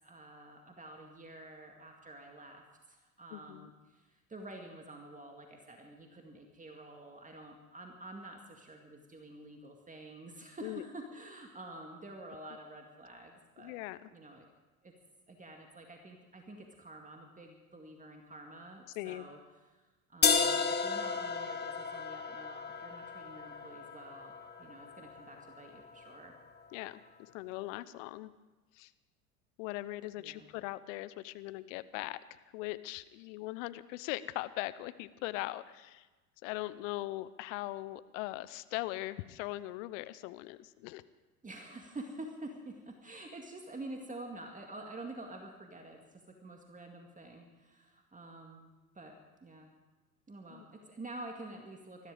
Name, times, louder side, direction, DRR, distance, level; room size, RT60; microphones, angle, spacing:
voice 1, 0.0-13.8 14.1-14.5 14.8-14.9 15.3-19.8 20.1-26.4 30.2-30.5 41.4-49.7 50.3-52.1, right 2 dB, 15° right, 2 dB, 2.1 m, -48 dB
voice 2, 3.3-3.7 10.6-10.8 13.6-14.1 18.9-19.3 26.7-28.3 28.7-28.9 29.6-36.1 36.4-41.0 50.5-50.7, left 18 dB, 60° left, 15 dB, 0.8 m, -40 dB
sound 1, 20.2-26.2, left 5 dB, 20° left, 1.5 m, -34 dB
20.5 x 14.0 x 5.1 m, 1.2 s
hypercardioid pair, 70°, 45 cm